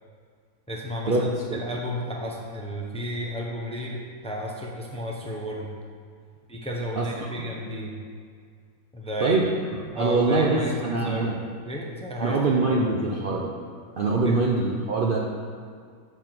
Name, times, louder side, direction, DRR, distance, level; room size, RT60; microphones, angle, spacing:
voice 1, 0.7-5.7 6.5-7.9 8.9-9.4 9.9-11.4 11.6-12.4 12.7-13.0 14.2-14.4, equal, 5° left, -2 dB, 0.7 m, -32 dB
voice 2, 7.0-7.3 9.2-9.5 9.9-11.4 12.2-13.5 14.0-15.2, right 3 dB, 50° right, -2 dB, 0.7 m, -23 dB
6.9 x 6.3 x 6.0 m, 2.1 s
omnidirectional pair, 1.6 m